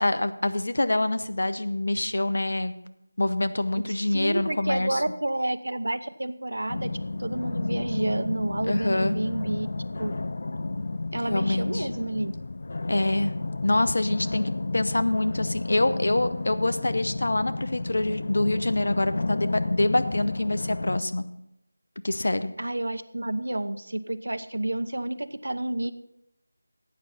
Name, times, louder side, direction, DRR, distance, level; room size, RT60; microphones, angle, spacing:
voice 1, 0.0-2.7 3.2-5.0 8.7-9.2 11.2-11.9 12.9-13.3 13.6-21.2 22.0-22.5, left 1 dB, 50° left, 11 dB, 0.8 m, -25 dB
voice 2, 3.7-9.7 10.0-10.1 11.1-12.3 22.6-25.9, right 1 dB, 75° right, 11 dB, 0.9 m, -30 dB
sound 1, 6.7-21.0, left 2 dB, 30° left, 0.3 m, -32 dB
15.5 x 8.9 x 4.1 m, 0.84 s
figure-of-eight pair, 180°, 0 cm